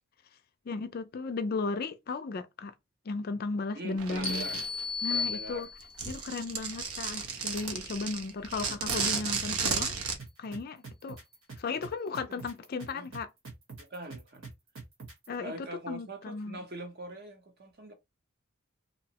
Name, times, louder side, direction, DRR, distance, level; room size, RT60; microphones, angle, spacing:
voice 1, 0.7-2.7 3.1-4.5 5.0-5.7 6.1-10.0 10.4-11.2 11.6-13.3 15.3-16.6, left 4 dB, 45° left, 0.3 m, -35 dB
voice 2, 3.7-4.6 5.1-5.7 8.5-9.3 12.1-12.4 12.9-13.1 13.8-14.5 15.4-17.9, right 2 dB, 45° right, 0.7 m, -43 dB
sound 1, 4.0-4.8 5.8-10.2, right 5 dB, 85° right, 0.7 m, -33 dB
sound 2, 4.2-6.1, left 4 dB, 5° left, 0.8 m, -34 dB
sound 3, 10.2-15.3, right 4 dB, 70° right, 1.1 m, -45 dB
2.9 x 2.0 x 2.7 m
head